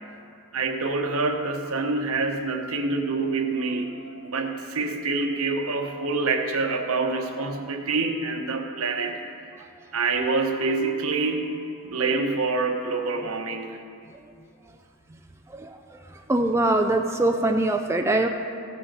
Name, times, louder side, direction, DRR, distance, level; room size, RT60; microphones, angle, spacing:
voice 1, 0.5-9.2 9.9-11.6 11.8-13.8, right 3 dB, 70° right, 4 dB, 1.0 m, -26 dB
voice 2, 15.5-16.0 16.3-18.3, right 2 dB, 10° right, 3 dB, 0.4 m, -23 dB
15.0 x 6.5 x 4.7 m, 2.4 s
head